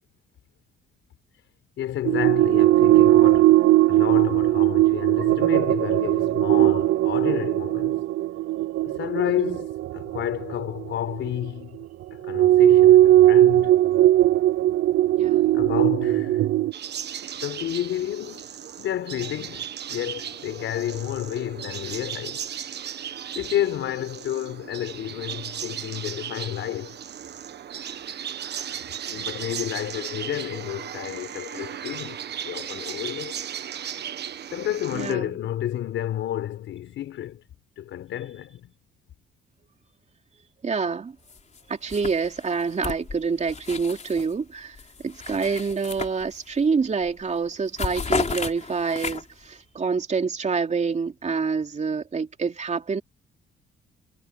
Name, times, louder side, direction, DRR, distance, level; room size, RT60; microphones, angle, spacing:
voice 1, 1.8-8.0 8.8-11.8 12.1-13.8 15.5-16.5 17.4-22.5 22.9-27.0 29.1-33.4 34.5-37.4 37.8-38.7, left 12 dB, 80° left, 4.4 m, -31 dB
sound 1, 2.1-11.3 12.2-16.7, right 15 dB, 75° right, 0.6 m, -19 dB
voice 2, 15.2-15.6 34.9-35.3 40.6-41.2 41.7-44.8 45.0-53.0, right 5 dB, 35° right, 2.9 m, -27 dB
sound 2, 16.7-35.1, right 9 dB, 60° right, 1.4 m, -36 dB
sound 3, 41.3-41.6 41.9-44.3 44.7-46.6 47.0-47.2 47.5-49.5, left 5 dB, 35° left, 4.4 m, -33 dB
cardioid pair, 90°, 20 cm